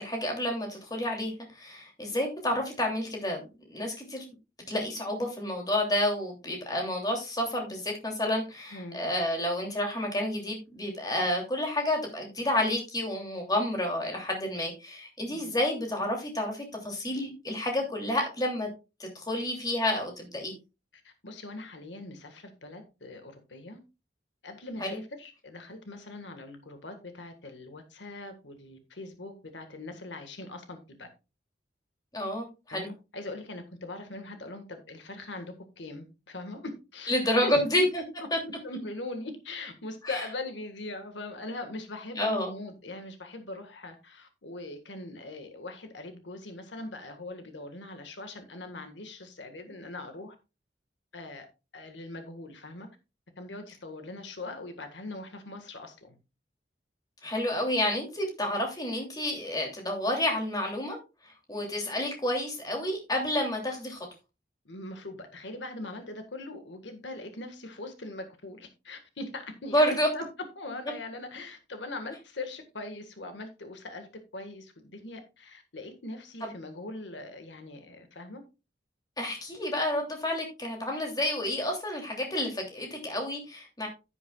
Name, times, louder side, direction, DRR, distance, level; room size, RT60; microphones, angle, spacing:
voice 1, 0.0-3.4 3.7-4.3 4.7-18.7 19.0-20.5 24.8-25.0 32.1-32.9 37.1-38.0 38.3-38.4 40.0-40.2 42.2-42.5 57.2-61.0 61.5-64.0 69.7-70.1 79.2-83.9, left 1 dB, 20° left, 2.9 m, -30 dB
voice 2, 21.0-23.8 24.4-31.1 32.7-37.1 37.4-37.6 38.6-50.3 51.1-51.5 51.7-52.9 53.4-56.2 64.6-74.1 74.3-78.4, left 2 dB, 80° left, 1.7 m, -41 dB
11.0 x 10.0 x 2.4 m
head